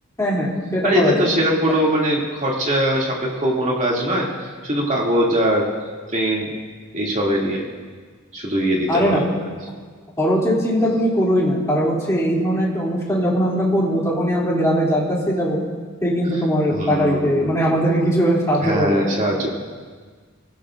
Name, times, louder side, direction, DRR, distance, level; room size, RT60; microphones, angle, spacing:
voice 1, 0.2-1.3 8.9-9.2 10.2-15.6 16.0-19.0, equal, 15° left, -6 dB, 2.9 m, -20 dB
voice 2, 0.8-5.7 6.1-6.5 6.9-7.6 8.3-9.2 16.7-17.6 18.6-19.5, equal, 35° right, -3 dB, 2.7 m, -21 dB
24.0 x 15.5 x 2.6 m, 1.5 s
head